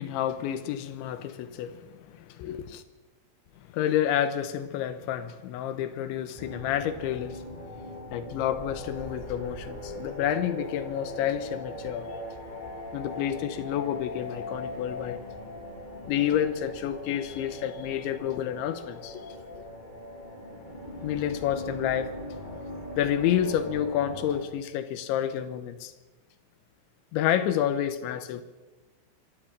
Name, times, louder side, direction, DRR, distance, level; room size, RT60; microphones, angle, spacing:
voice 1, 0.0-2.8 3.6-7.5 7.8-12.1 12.9-15.2 16.0-19.3 21.0-22.1 23.0-25.9 27.1-28.4, left 10 dB, 90° left, 10 dB, 3.5 m, -29 dB
sound 1, 6.4-24.4, left 1 dB, 10° left, 3.2 m, -40 dB
24.5 x 12.5 x 8.8 m, 1.2 s
omnidirectional pair, 5.2 m